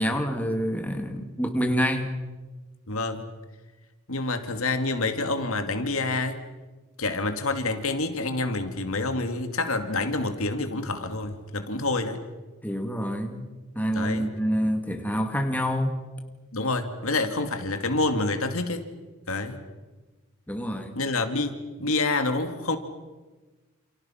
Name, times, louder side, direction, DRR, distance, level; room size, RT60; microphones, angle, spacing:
voice 1, 0.0-2.1 12.6-13.4 13.7-15.9 20.5-20.9, equal, 5° left, 4 dB, 2.4 m, -27 dB
voice 2, 2.9-3.4 4.1-6.4 7.0-12.2 13.9-14.3 16.5-18.9 19.3-19.6 21.0-22.8, left 2 dB, 70° left, 7 dB, 2.5 m, -27 dB
30.0 x 28.5 x 5.9 m, 1.2 s
head